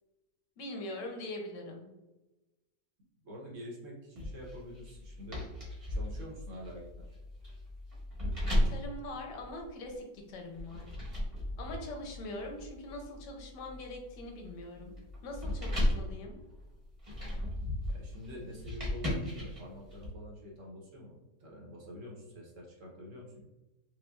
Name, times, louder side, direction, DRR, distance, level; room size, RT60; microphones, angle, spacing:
voice 1, 0.6-1.9 8.5-10.9 11.6-14.9 15.2-16.4, left 1 dB, 90° left, 2 dB, 1.4 m, -42 dB
voice 2, 3.2-5.4 5.9-7.1 17.8-23.4, equal, 55° right, -3 dB, 1.1 m, -47 dB
sound 1, 4.2-10.0 10.6-20.1, left 1 dB, 25° right, 1.0 m, -36 dB
5.1 x 2.2 x 2.3 m, 1.0 s
omnidirectional pair, 1.8 m